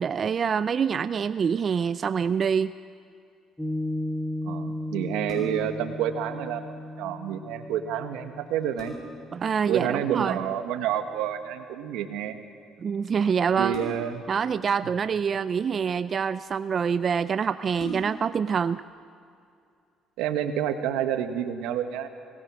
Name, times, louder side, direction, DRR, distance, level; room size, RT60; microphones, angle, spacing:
voice 1, 0.0-2.7 9.3-10.4 12.8-13.8 14.3-18.8, right 6 dB, 45° right, 14 dB, 0.4 m, -26 dB
Piano, 3.6-10.3, left 1 dB, 5° left, 1.7 m, -35 dB
voice 2, 4.4-6.7 7.0-8.9 9.7-12.4 13.5-14.2 20.2-22.1, right 10 dB, 85° right, 7 dB, 1.4 m, -29 dB
sound 1, 5.3-5.8 7.8-7.9 8.4-9.3 10.9-11.3 13.7-14.3 15.3-16.0 16.7-16.8 17.1-17.2 17.7-18.4 18.9-19.0, right 1 dB, 60° left, 7.0 m, -39 dB
25.5 x 19.5 x 6.2 m, 2.5 s
supercardioid pair, 85°, 0 cm